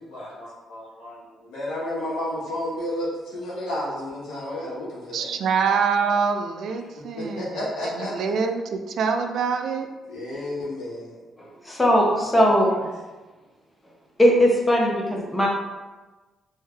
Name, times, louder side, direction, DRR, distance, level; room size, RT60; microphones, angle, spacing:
voice 1, 0.0-5.3 6.0-6.1 7.2-8.1 10.0-11.2 12.3-12.8, left 1 dB, 90° left, -7 dB, 1.2 m, -32 dB
voice 2, 5.1-9.9, right 5 dB, 70° right, 6 dB, 0.4 m, -25 dB
voice 3, 11.4-12.7 14.2-15.5, equal, 15° left, -2 dB, 0.9 m, -19 dB
3.2 x 2.7 x 3.3 m, 1.2 s
cardioid pair, 90°, 0 cm